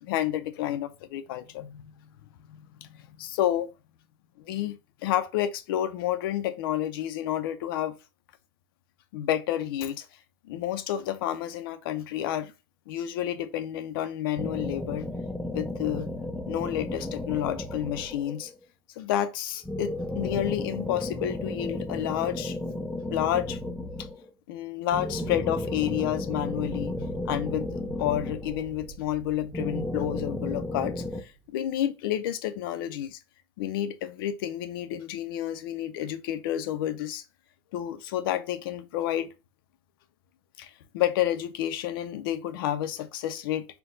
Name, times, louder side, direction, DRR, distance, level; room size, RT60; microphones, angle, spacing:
voice 1, 0.0-1.9 2.5-3.7 4.4-8.0 9.1-10.1 10.4-12.5 12.9-15.1 15.5-16.1 16.5-18.5 19.0-22.6 23.1-23.6 24.5-27.0 27.2-33.2 33.6-37.2 37.7-39.3 40.6-43.7, left 11 dB, 75° left, 0.6 m, -30 dB
sound 1, 14.3-18.5 19.6-24.3 24.9-28.9 29.5-31.2, left 1 dB, 5° left, 0.4 m, -34 dB
Fire, 26.4-31.6, right 4 dB, 35° right, 1.4 m, -46 dB
4.5 x 2.3 x 3.9 m
supercardioid pair, 155°, 12 cm